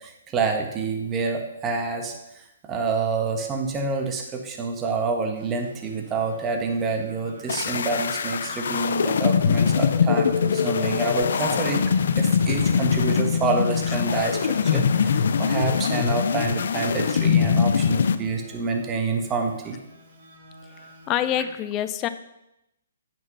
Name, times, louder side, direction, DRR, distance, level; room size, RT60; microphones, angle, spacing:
voice 1, 0.0-11.8 12.2-19.8, right 4 dB, 20° right, 3 dB, 1.4 m, -27 dB
sound 1, 5.3-21.5, right 1 dB, 70° right, 3.2 m, -48 dB
sound 2, 7.5-18.2, left 6 dB, 65° left, 0.6 m, -22 dB
voice 2, 21.1-22.1, left 11 dB, 25° left, 11 dB, 0.6 m, -25 dB
9.4 x 6.1 x 5.5 m, 0.87 s
hypercardioid pair, 145°, 0 cm